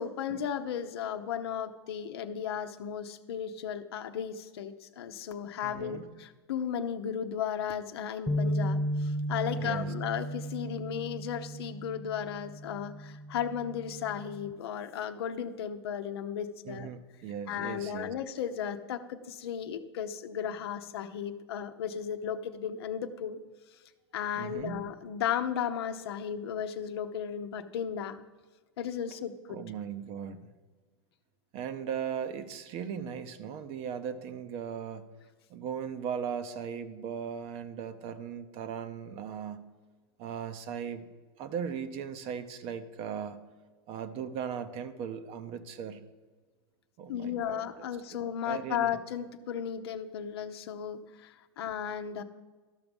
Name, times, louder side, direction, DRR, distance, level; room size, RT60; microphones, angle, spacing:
voice 1, 0.0-16.9 17.5-23.4 24.1-28.2 28.8-29.6 47.1-52.2, left 8 dB, 70° left, 9 dB, 0.8 m, -35 dB
voice 2, 5.6-6.0 9.5-9.9 16.6-18.1 24.4-24.8 29.5-30.5 31.5-35.1 35.5-39.7 40.2-41.0 41.4-43.4 43.9-46.0 47.0-47.7 48.4-49.0, right 7 dB, 45° right, 10 dB, 0.9 m, -38 dB
sound 1, 8.3-14.5, equal, ahead, 0.6 m, -35 dB
13.0 x 5.9 x 5.2 m, 1.3 s
hypercardioid pair, 100°, 14 cm